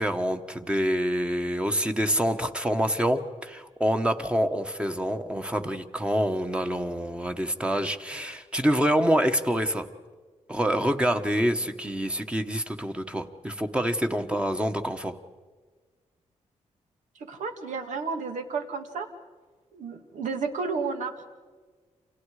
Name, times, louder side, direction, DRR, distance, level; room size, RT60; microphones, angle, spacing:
voice 1, 0.0-9.9 10.5-15.2, equal, 10° right, 7 dB, 1.3 m, -26 dB
voice 2, 17.2-19.1 19.7-21.3, right 5 dB, 85° right, 6 dB, 2.4 m, -32 dB
29.5 x 27.5 x 5.0 m, 1.4 s
wide cardioid pair, 135°, 12 cm